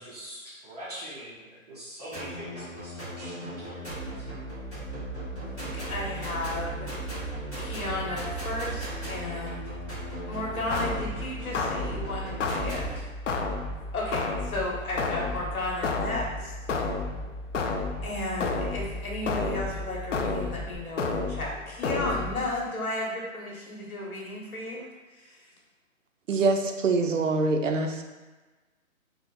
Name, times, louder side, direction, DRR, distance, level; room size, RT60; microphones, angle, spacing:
voice 1, 0.0-3.8 4.2-4.3 5.6-5.7, right 1 dB, 30° right, -9 dB, 0.8 m, -43 dB
sound 1, 2.1-13.0, right 2 dB, 5° left, 0.8 m, -37 dB
sound 2, 3.9-20.7, equal, 40° left, 0.9 m, -41 dB
voice 2, 5.6-6.9 7.6-9.8 10.3-13.0 13.9-16.5 18.0-25.4, left 2 dB, 90° left, -3 dB, 1.3 m, -34 dB
sound 3, 10.7-22.6, left 4 dB, 60° left, 0.5 m, -32 dB
voice 3, 26.3-28.0, right 3 dB, 65° right, 4 dB, 0.5 m, -24 dB
3.8 x 2.1 x 3.8 m, 1.2 s
hypercardioid pair, 170°, 42 cm